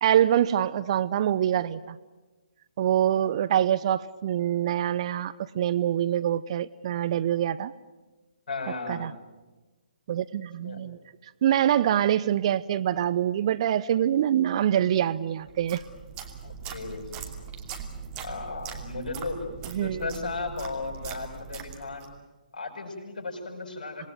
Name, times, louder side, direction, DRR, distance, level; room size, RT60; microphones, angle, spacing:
voice 1, 0.0-2.0 2.8-7.7 8.9-9.1 10.1-11.0 11.4-15.8 19.7-20.1 24.0-24.1, right 10 dB, 40° right, 15 dB, 0.8 m, -25 dB
voice 2, 8.5-9.1 10.6-10.8 16.4-17.0 18.2-19.5 19.7-22.1 22.5-24.1, left 3 dB, 60° left, 3 dB, 7.3 m, -35 dB
sound 1, 15.5-22.2, right 6 dB, 20° right, 2.7 m, -40 dB
27.5 x 19.5 x 9.3 m, 1.2 s
figure-of-eight pair, 135°, 5 cm